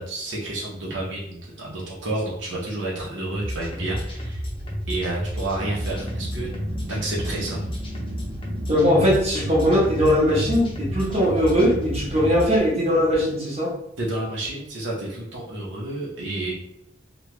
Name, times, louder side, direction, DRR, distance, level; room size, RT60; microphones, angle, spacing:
voice 1, 0.0-4.4 4.9-6.5 6.9-7.6 14.0-16.5, right 2 dB, 90° right, -5 dB, 1.0 m, -30 dB
sound 1, 3.3-12.6, equal, 30° left, 0.6 m, -31 dB
Growling, 5.6-13.3, right 1 dB, 50° right, 0.6 m, -38 dB
voice 2, 8.7-13.7, equal, 35° right, -5 dB, 1.1 m, -20 dB
3.1 x 2.3 x 3.1 m, 0.77 s
head